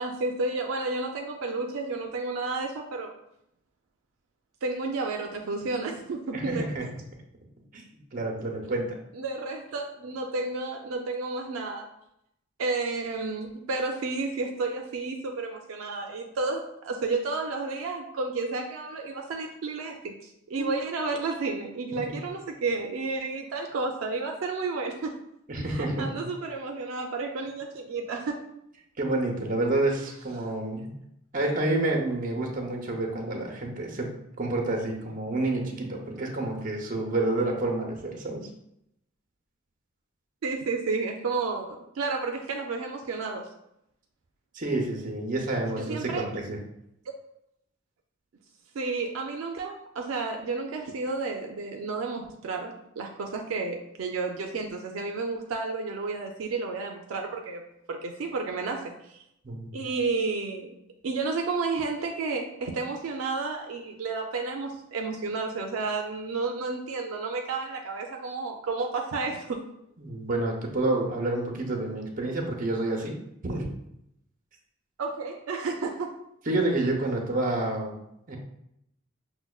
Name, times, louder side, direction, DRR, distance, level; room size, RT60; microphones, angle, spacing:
voice 1, 0.0-3.1 4.6-6.9 9.1-11.9 12.6-25.2 25.7-28.4 40.4-43.5 45.8-46.3 48.7-57.6 57.9-59.2 59.7-60.7 61.0-69.6 75.0-76.2, right 3 dB, 80° right, 2 dB, 0.4 m, -31 dB
voice 2, 6.3-6.9 7.7-7.8 8.1-9.0 20.5-20.7 25.5-26.2 29.0-30.9 31.3-38.5 44.5-46.6 59.4-59.7 70.0-73.2 73.4-73.7 76.5-78.0 78.3-78.4, right 2 dB, 40° right, 1 dB, 0.6 m, -29 dB
5.9 x 2.1 x 2.3 m, 0.79 s
head